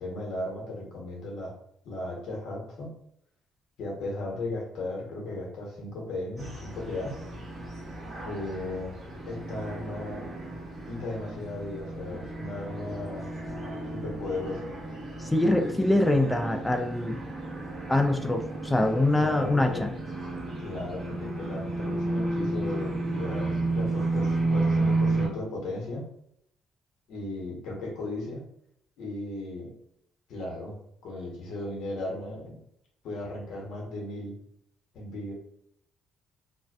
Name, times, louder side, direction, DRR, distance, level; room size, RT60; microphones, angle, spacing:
voice 1, 0.0-1.5 1.8-2.9 3.8-7.1 8.2-8.9 9.2-10.2 10.9-13.3 13.9-14.7 19.2-19.9 20.6-26.0 27.1-28.4 29.0-29.7 30.3-30.8 31.0-32.6 33.0-34.4 34.9-35.3, left 2 dB, 75° left, -1 dB, 0.9 m, -36 dB
sound 1, 6.4-25.3, right 2 dB, 20° right, 1.0 m, -32 dB
voice 2, 15.2-17.2 17.9-19.9, left 1 dB, 10° left, 4 dB, 0.3 m, -24 dB
2.5 x 2.2 x 2.3 m, 0.71 s
cardioid pair, 120°, 0 cm